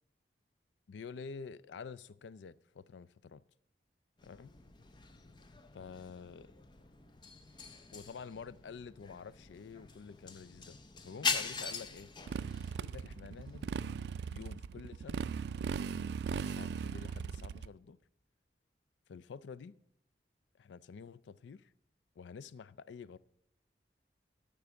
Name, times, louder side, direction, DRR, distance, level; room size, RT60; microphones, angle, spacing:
voice 1, 0.9-3.4 4.2-4.5 5.7-6.5 7.9-10.8 11.0-12.1 12.8-13.7 14.3-15.2 16.3-18.0 19.1-19.7 20.6-21.7 22.2-23.2, left 5 dB, 85° left, 0.4 m, -48 dB
sound 1, 4.2-14.0, left 4 dB, 25° left, 0.5 m, -43 dB
Motorcycle, 12.3-17.7, right 6 dB, 70° right, 0.3 m, -38 dB
13.5 x 4.6 x 7.1 m
head